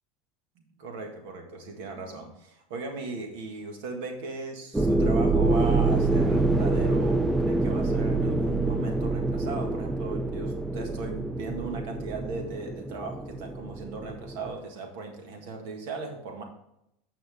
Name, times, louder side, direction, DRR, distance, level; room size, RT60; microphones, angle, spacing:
voice 1, 0.8-16.4, right 3 dB, 75° right, 4 dB, 1.7 m, -37 dB
sound 1, 4.7-14.5, right 2 dB, 5° right, 0.5 m, -26 dB
8.9 x 5.6 x 3.6 m, 0.80 s
supercardioid pair, 115°, 0 cm